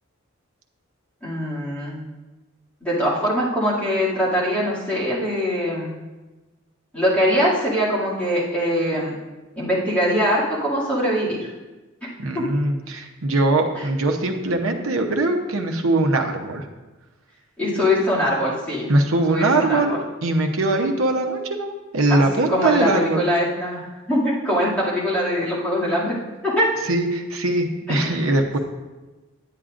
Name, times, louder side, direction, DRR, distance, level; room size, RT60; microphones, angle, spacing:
voice 1, 1.2-2.0 2.8-5.9 6.9-9.2 9.6-11.4 12.3-12.4 13.7-13.8 17.6-18.9 19.3-20.0 22.1-22.2 22.5-26.2 26.4-26.7 27.9-28.4, equal, 5° left, -9 dB, 2.3 m, -22 dB
voice 2, 12.2-16.7 18.9-23.2 26.9-28.6, right 2 dB, 75° right, 3 dB, 0.8 m, -21 dB
9.8 x 8.5 x 2.5 m, 1.2 s
head